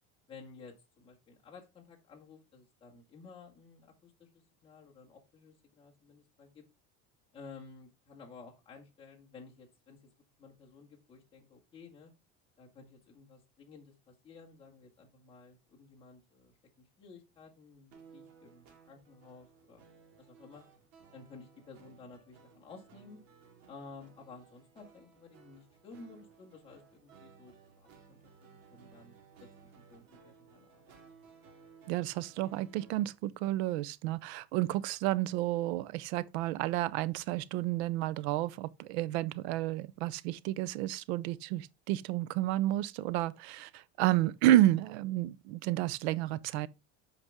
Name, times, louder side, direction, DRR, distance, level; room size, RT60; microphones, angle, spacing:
voice 1, 0.3-6.6 7.3-10.0 10.4-12.1 12.6-19.8 20.2-20.6 21.1-23.2 23.7-27.5 27.8-28.3 28.7-29.1 29.4-29.5 29.9-31.0, left 4 dB, 15° left, 1.9 m, -54 dB
sound 1, 17.9-33.1, right 6 dB, 55° right, 2.5 m, -59 dB
voice 2, 31.9-46.7, right 15 dB, 80° right, 0.6 m, -31 dB
8.1 x 5.1 x 3.5 m
cardioid pair, 165°, 32 cm